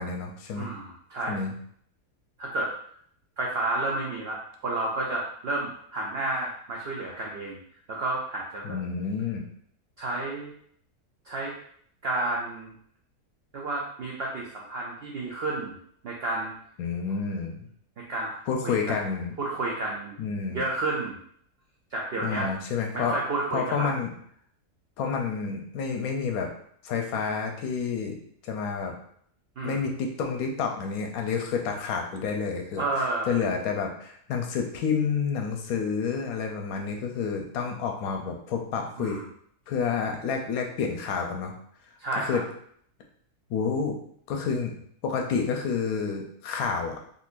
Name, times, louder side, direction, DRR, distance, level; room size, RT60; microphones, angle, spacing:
voice 1, 0.0-0.7 1.3-1.5 8.6-9.4 16.8-17.7 18.5-19.3 20.2-20.6 22.2-23.1 23.5-24.1 25.0-26.5 26.8-28.1 28.4-28.9 29.6-32.9 33.3-39.2 39.7-41.5 42.2-42.4 43.5-44.0 44.3-44.7 45.0-47.0, left 5 dB, 75° left, 3 dB, 1.0 m, -29 dB
voice 2, 0.6-1.4 2.4-2.7 3.4-7.6 7.9-8.8 10.0-10.5 11.3-11.5 12.0-12.7 13.5-15.8 16.0-16.5 18.1-18.4 18.6-19.0 19.4-20.2 20.5-21.2 21.9-22.5 22.9-23.9 29.6-29.8 32.8-33.4 39.0-39.2 42.0-42.4, right 2 dB, 80° right, -2 dB, 0.5 m, -31 dB
3.8 x 2.6 x 2.4 m, 0.64 s
omnidirectional pair, 1.7 m